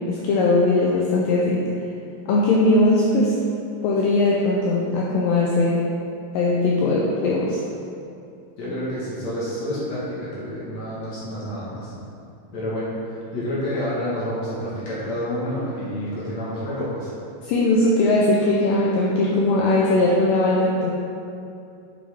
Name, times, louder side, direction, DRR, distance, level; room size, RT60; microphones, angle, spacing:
voice 1, 0.0-1.7 2.3-3.4 3.8-5.8 6.3-7.6 17.4-20.9, left 2 dB, 90° left, -3 dB, 1.9 m, -19 dB
voice 2, 8.6-12.0 12.5-13.0 13.3-17.1, equal, 55° left, -9 dB, 2.2 m, -29 dB
7.4 x 7.1 x 3.6 m, 2.5 s
omnidirectional pair, 4.7 m